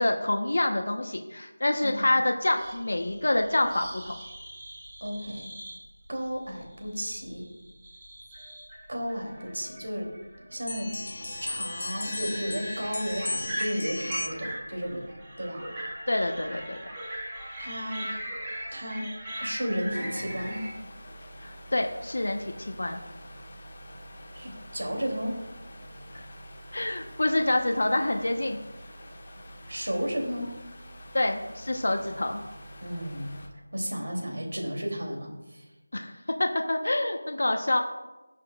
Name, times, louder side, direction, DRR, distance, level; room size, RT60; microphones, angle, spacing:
voice 1, 0.0-4.2 16.1-16.8 21.4-23.0 26.1-26.2 26.7-28.6 31.1-32.4 35.9-37.8, left 1 dB, 65° left, 4 dB, 1.0 m, -27 dB
voice 2, 1.8-2.2 5.0-5.5 6.1-7.4 8.9-10.1 10.5-10.9 11.4-15.1 15.4-15.6 17.6-18.1 18.7-19.1 19.4-20.7 24.3-25.4 29.7-30.5 32.8-33.3 33.7-35.6, equal, 75° right, 0 dB, 3.0 m, -33 dB
sound 1, 2.6-20.7, right 1 dB, 15° right, 1.8 m, -40 dB
sound 2, 10.7-14.6, left 2 dB, 50° left, 0.6 m, -36 dB
sound 3, 19.9-33.5, equal, 30° left, 1.5 m, -46 dB
16.5 x 6.5 x 2.4 m, 1.1 s
figure-of-eight pair, 175°, 0 cm